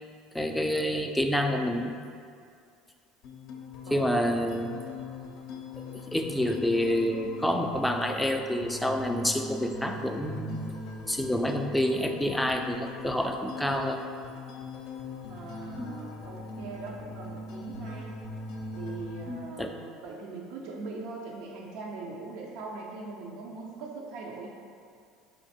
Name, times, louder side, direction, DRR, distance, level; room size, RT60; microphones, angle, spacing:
voice 1, 0.3-2.0 3.9-4.8 5.8-10.6 11.1-14.0 15.8-15.9 19.3-19.7, equal, 5° left, 4 dB, 0.3 m, -28 dB
sound 1, 3.2-19.2, left 3 dB, 65° left, 0.5 m, -41 dB
voice 2, 3.9-4.4 15.3-18.2 18.8-24.5, right 3 dB, 70° right, -1 dB, 0.5 m, -41 dB
4.3 x 2.5 x 4.1 m, 2.2 s
supercardioid pair, 105°, 0 cm